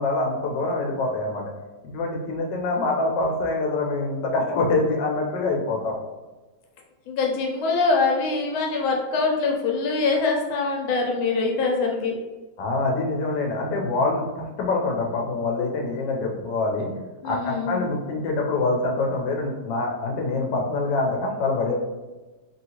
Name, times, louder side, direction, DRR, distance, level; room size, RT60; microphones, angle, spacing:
voice 1, 0.0-1.4 1.8-5.9 12.6-16.9 17.2-21.7, left 3 dB, 70° left, 0 dB, 1.2 m, -25 dB
voice 2, 7.1-12.1 17.2-17.9, left 4 dB, 85° left, 0 dB, 1.4 m, -24 dB
3.0 x 2.7 x 2.8 m, 1.2 s
omnidirectional pair, 2.1 m